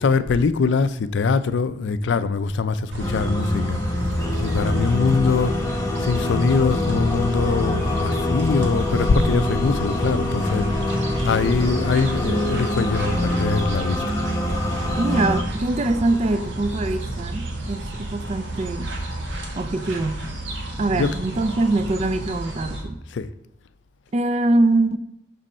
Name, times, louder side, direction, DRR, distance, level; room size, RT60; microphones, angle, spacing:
voice 1, 0.0-3.8 4.4-5.6 6.0-10.7 11.2-14.0 20.8-21.1 23.1-23.3, left 4 dB, 85° left, 0.4 m, -22 dB
sound 1, 2.9-22.8, right 1 dB, 85° right, 1.3 m, -29 dB
sound 2, 3.0-15.4, left 1 dB, 20° left, 0.8 m, -26 dB
voice 2, 15.0-18.9 19.6-20.2 20.8-23.0 24.1-25.0, right 2 dB, 35° right, 0.4 m, -23 dB
6.3 x 5.3 x 4.2 m
head